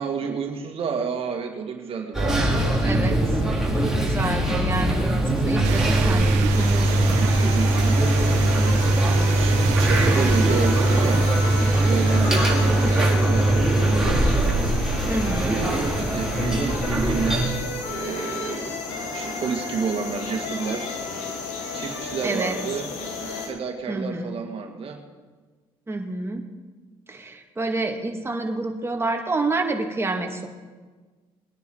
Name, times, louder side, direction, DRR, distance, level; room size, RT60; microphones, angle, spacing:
voice 1, 0.0-2.5 7.1-8.0 8.4-8.8 9.3-11.2 11.8-14.2 15.4-17.6 17.9-18.7 19.1-20.9 21.7-22.9 23.4-25.0, right 6 dB, 60° right, 3 dB, 2.0 m, -30 dB
sound 1, 2.1-17.5, right 1 dB, 5° right, 4.0 m, -21 dB
voice 2, 2.8-3.2 3.8-7.1 9.1-9.2 15.1-15.6 22.2-22.6 23.9-24.4 25.9-26.4 27.1-30.5, right 2 dB, 20° right, 2 dB, 2.3 m, -28 dB
sound 2, 5.6-13.1, right 12 dB, 85° right, 0.7 m, -32 dB
parisian streets, 6.5-23.5, left 3 dB, 90° left, 2.2 m, -32 dB
21.5 x 9.7 x 4.7 m, 1.4 s
supercardioid pair, 65°, 11 cm